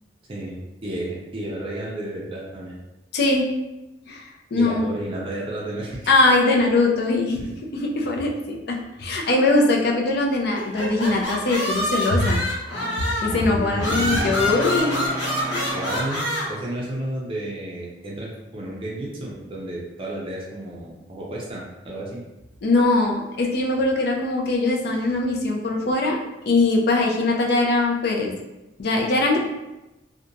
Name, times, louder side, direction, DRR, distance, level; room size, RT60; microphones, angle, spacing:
voice 1, 0.3-2.8 4.6-6.1 7.4-7.6 8.9-9.1 13.5-14.2 15.7-22.2, right 1 dB, 30° right, -4 dB, 0.4 m, -32 dB
voice 2, 3.1-3.5 4.1-4.2 4.5-4.9 6.1-7.4 7.7-12.5 13.2-15.1 15.5-15.7 22.6-26.2 26.5-28.3 28.8-29.4, left 2 dB, 60° left, 0 dB, 0.4 m, -21 dB
sound 1, 10.5-13.4 13.8-16.4, left 1 dB, 85° left, 0.9 m, -26 dB
Brass instrument, 12.7-16.5, equal, 30° left, 1.3 m, -33 dB
2.8 x 2.2 x 2.5 m, 0.98 s
head